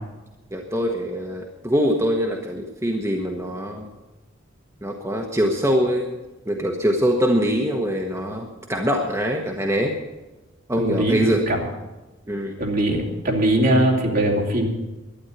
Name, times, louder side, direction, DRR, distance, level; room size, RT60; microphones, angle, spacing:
voice 1, 0.5-3.9 4.8-6.2 6.5-10.0 10.7-11.4 12.3-12.6, equal, 15° right, 1 dB, 1.1 m, -23 dB
voice 2, 10.8-11.6 12.6-14.7, right 1 dB, 50° right, -1 dB, 3.0 m, -21 dB
12.0 x 9.7 x 9.7 m, 1.1 s
head